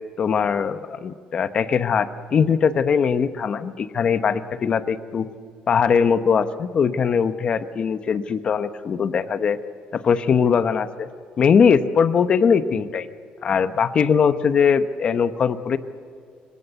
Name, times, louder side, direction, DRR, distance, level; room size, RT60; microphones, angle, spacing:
voice 1, 0.2-5.3 5.7-9.6 9.9-11.1 11.4-13.1 13.4-15.8, left 6 dB, 35° left, 12 dB, 0.9 m, -20 dB
25.0 x 18.0 x 8.1 m, 2.3 s
cardioid pair, 165°, 3 cm